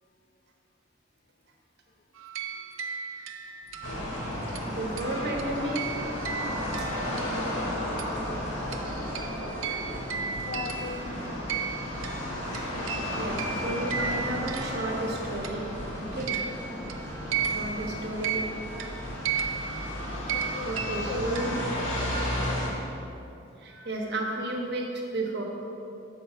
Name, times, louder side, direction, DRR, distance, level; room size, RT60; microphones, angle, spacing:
sound 1, 2.2-7.7 8.0-15.8 16.2-21.9, right 6 dB, 85° right, 0.5 m, -36 dB
Singing, 3.6-22.8, equal, 10° left, 0.8 m, -43 dB
sound 2, 3.8-22.7, left 1 dB, 90° left, 1.6 m, -34 dB
voice 1, 4.6-5.8 6.8-6.9 12.5-12.7 13.2-15.7 16.0-16.4 17.1-18.4 20.6-21.5 23.6-25.4, right 1 dB, 55° right, 0 dB, 1.0 m, -33 dB
voice 2, 10.4-11.3 20.3-21.7 22.2-22.5, left 4 dB, 40° left, 8 dB, 0.3 m, -39 dB
7.0 x 5.2 x 5.0 m, 2.8 s
head